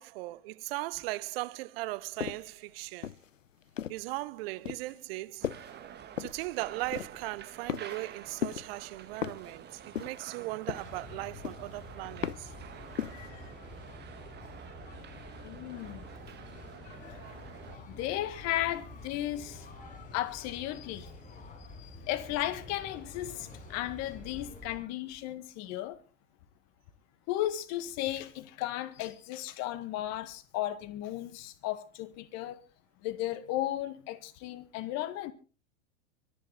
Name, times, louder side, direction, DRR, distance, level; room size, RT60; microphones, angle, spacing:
voice 1, 0.0-3.1 3.9-5.5 6.2-12.5 13.0-13.1, right 19 dB, 50° right, 0.9 m, -38 dB
sound 1, 2.2-2.5 3.0-4.1 4.6-4.9 5.4-5.8 6.2-6.5 6.9-7.3 7.7-8.1 8.4-8.8 9.2-9.5 9.9-10.3 10.7-11.1 11.4-11.8 12.2-12.6 13.0-13.3, left 9 dB, 85° left, 0.7 m, -37 dB
sound 2, 5.4-17.8, right 9 dB, 25° right, 1.7 m, -49 dB
sound 3, 10.7-24.7, left 2 dB, 20° left, 6.6 m, -48 dB
voice 2, 13.1-13.5 15.4-16.0 16.9-17.4 17.9-19.6 20.1-21.1 21.8-26.0 27.3-32.6 33.0-35.3, left 14 dB, 45° left, 1.9 m, -35 dB
24.5 x 10.0 x 4.1 m
figure-of-eight pair, 95°, 37 cm